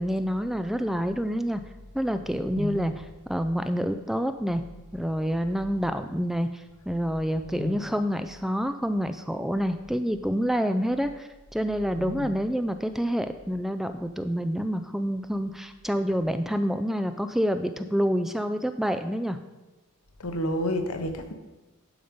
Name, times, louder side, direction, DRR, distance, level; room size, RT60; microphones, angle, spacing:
voice 1, 0.0-1.6 1.9-2.9 3.3-4.6 4.9-19.4, equal, ahead, 9 dB, 0.3 m, -27 dB
voice 2, 2.6-2.9 7.4-7.8 12.0-12.3 20.2-21.3, left 1 dB, 85° left, 6 dB, 1.1 m, -30 dB
11.0 x 5.1 x 5.2 m, 1.1 s
head